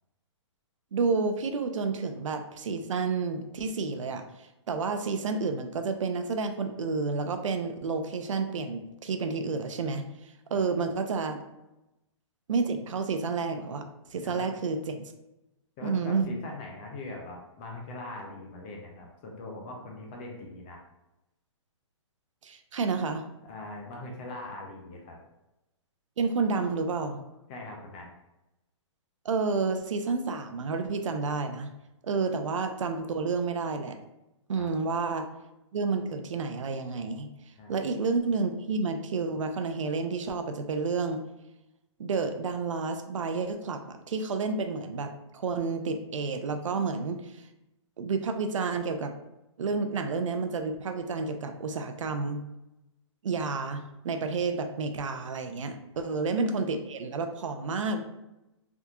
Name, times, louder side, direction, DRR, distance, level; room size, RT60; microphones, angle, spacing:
voice 1, 0.9-4.2 4.7-10.0 10.5-11.4 12.5-13.8 14.1-15.0 15.8-16.4 22.4-23.3 26.2-27.2 29.2-31.7 32.0-33.9 34.5-35.3 35.7-37.3 37.7-41.2 42.0-47.2 48.0-49.1 49.6-52.4 53.2-58.0, right 4 dB, 80° right, 7 dB, 0.5 m, -30 dB
voice 2, 14.2-14.5 15.8-20.8 23.4-25.2 27.5-28.1 34.6-34.7 37.6-37.8 55.9-56.0, left 2 dB, 15° left, 0 dB, 0.3 m, -41 dB
3.5 x 2.7 x 2.3 m, 0.92 s
hypercardioid pair, 165°, 16 cm